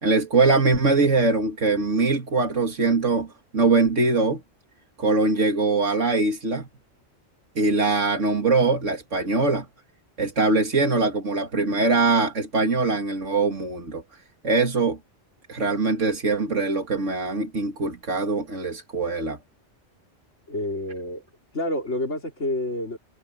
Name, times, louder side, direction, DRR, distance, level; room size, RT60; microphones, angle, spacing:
voice 1, 0.0-3.3 3.5-4.4 5.0-6.7 7.6-9.7 10.2-14.0 14.4-15.0 15.5-19.4, right 3 dB, 80° right, 2.9 m, -22 dB
voice 2, 20.5-21.2 21.5-23.0, left 1 dB, 70° left, 4.5 m, -28 dB
omnidirectional pair, 1.2 m